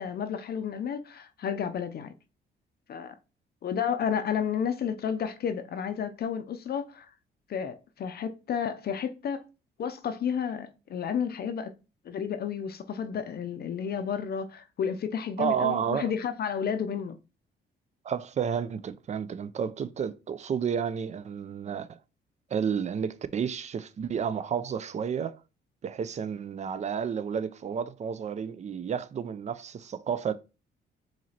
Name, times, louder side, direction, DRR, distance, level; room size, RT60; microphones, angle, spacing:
voice 1, 0.0-2.1 2.9-3.1 3.6-7.1 7.5-9.4 9.8-11.7 12.1-17.2, left 7 dB, 50° left, 0.5 m, -31 dB
voice 2, 15.4-16.1 18.0-22.0 22.5-25.4 25.8-30.3, right 7 dB, 35° right, 0.4 m, -31 dB
4.8 x 3.0 x 2.8 m
cardioid pair, 90°, 20 cm